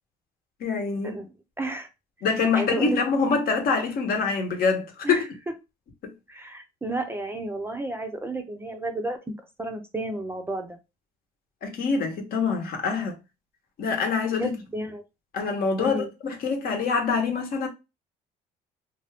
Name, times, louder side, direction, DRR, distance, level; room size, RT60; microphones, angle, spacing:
voice 1, 0.6-1.2 2.2-5.3 6.0-6.1 11.6-13.1 13.8-14.6 15.3-17.7, left 5 dB, 60° left, 0.9 m, -25 dB
voice 2, 1.6-1.9 2.5-3.0 5.0-5.2 6.3-9.2 9.6-10.8 14.4-15.0 15.8-16.1, right 2 dB, 15° right, 0.5 m, -31 dB
2.7 x 2.3 x 3.3 m
cardioid pair, 110°, 17 cm